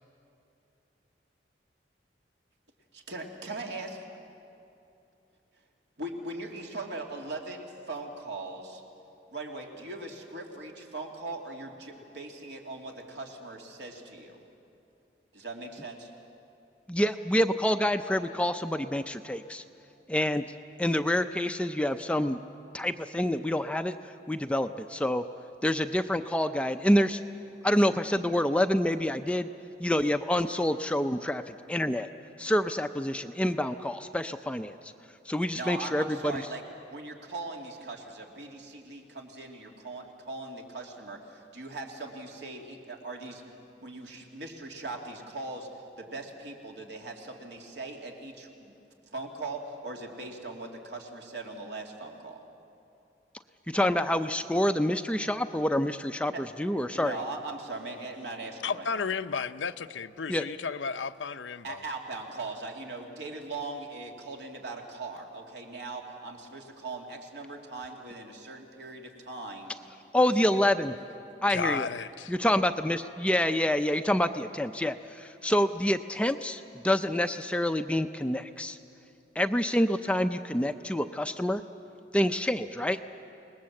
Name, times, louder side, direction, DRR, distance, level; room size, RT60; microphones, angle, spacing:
voice 1, 2.9-4.0 6.0-8.8 9.3-14.4 15.3-16.1 35.5-36.6 36.9-43.4 43.8-48.7 49.1-52.4 56.2-56.4 56.9-58.9 61.6-69.7 70.2-70.6, right 2 dB, 70° right, 1 dB, 2.8 m, -40 dB
voice 2, 16.9-19.6 20.1-20.4 20.8-22.4 22.7-23.9 24.3-25.2 25.6-27.2 27.6-29.5 29.8-32.1 32.4-34.9 35.3-36.4 53.7-57.2 60.3-60.4 70.1-70.9 71.4-71.9 72.3-78.8 79.4-81.6 82.1-83.0, left 1 dB, 5° left, 8 dB, 0.5 m, -27 dB
voice 3, 58.6-61.8 71.5-72.3, left 5 dB, 90° left, 11 dB, 0.7 m, -33 dB
27.0 x 20.0 x 7.7 m, 2.7 s
head